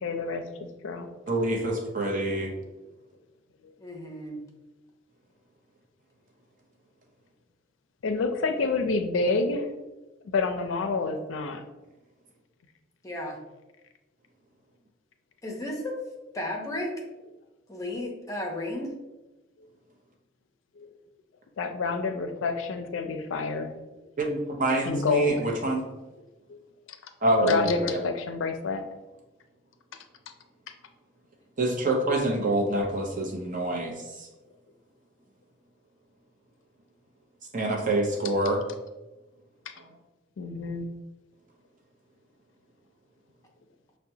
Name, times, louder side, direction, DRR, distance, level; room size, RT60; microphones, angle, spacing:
voice 1, 0.0-1.1 2.5-2.6 3.6-3.7 8.0-9.7 10.2-11.6 20.8-20.9 21.6-23.7 24.8-25.5 26.5-26.6 27.4-28.8 40.4-40.9, left 3 dB, 85° left, 7 dB, 0.4 m, -28 dB
voice 2, 1.3-2.5 24.2-25.8 27.2-28.0 31.6-34.3 37.5-38.6 39.8-39.9, right 1 dB, 45° right, 0 dB, 0.7 m, -26 dB
voice 3, 3.8-4.4 13.0-13.4 15.4-15.9 16.3-16.9 17.7-18.9, left 1 dB, 20° left, 0 dB, 0.7 m, -33 dB
5.8 x 2.1 x 2.7 m, 1.1 s
head